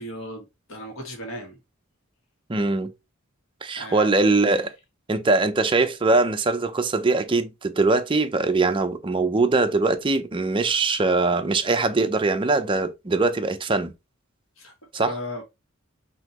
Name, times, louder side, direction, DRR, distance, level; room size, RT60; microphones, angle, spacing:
voice 1, 0.0-1.6 3.8-4.1 14.6-15.4, left 1 dB, 75° left, 1.6 m, -36 dB
voice 2, 2.5-2.9 3.6-4.7 5.1-13.9 14.9-15.2, right 3 dB, 25° right, 0.5 m, -22 dB
5.6 x 2.9 x 3.0 m
head